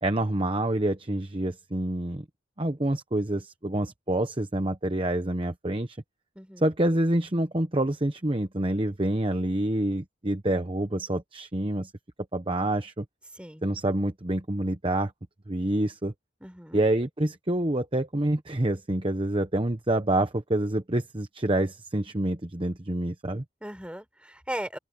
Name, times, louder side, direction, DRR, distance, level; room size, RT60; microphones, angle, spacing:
voice 1, 0.0-2.2 2.6-6.0 6.6-11.9 12.3-13.0 13.6-15.1 15.5-16.1 16.7-23.4, right 1 dB, 25° right, 1.0 m, -27 dB
voice 2, 6.4-6.7 13.4-13.6 16.4-16.8 23.6-24.8, right 1 dB, 5° right, 5.9 m, -37 dB
open air
head